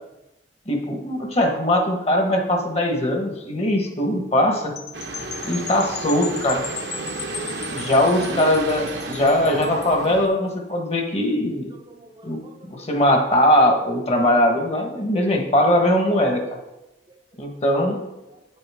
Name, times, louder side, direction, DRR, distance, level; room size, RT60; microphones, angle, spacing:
voice 1, 0.7-4.7 5.4-6.6 7.7-11.7 12.2-12.4 12.7-16.6 17.4-18.0, left 1 dB, 35° left, 3 dB, 1.2 m, -20 dB
sound 1, 4.8-10.1, left 7 dB, 65° left, 0.8 m, -36 dB
sound 2, 4.9-10.3, right 3 dB, 75° right, 0.9 m, -33 dB
voice 2, 8.2-8.5 11.7-12.9 14.8-15.4 16.5-16.6 17.1-17.2 17.8-18.4, right 2 dB, 25° right, 3 dB, 0.6 m, -42 dB
8.1 x 7.8 x 3.5 m, 0.94 s
head